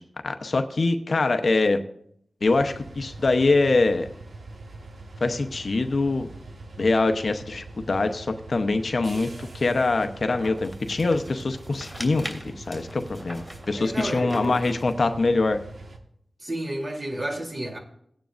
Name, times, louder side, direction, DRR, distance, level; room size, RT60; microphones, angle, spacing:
voice 1, 0.0-1.8 2.4-4.1 5.2-6.3 6.8-9.3 9.5-15.6, left 3 dB, 60° left, 0.8 m, -24 dB
sound 1, 2.4-16.0, right 2 dB, 75° right, 1.4 m, -43 dB
foley paper sheet of glossy poster paper flap in wind India, 10.0-15.0, equal, 10° right, 3.0 m, -42 dB
voice 2, 13.7-14.7 16.4-17.8, right 1 dB, 45° right, 3.2 m, -31 dB
17.5 x 9.4 x 2.6 m
cardioid pair, 55°, 0 cm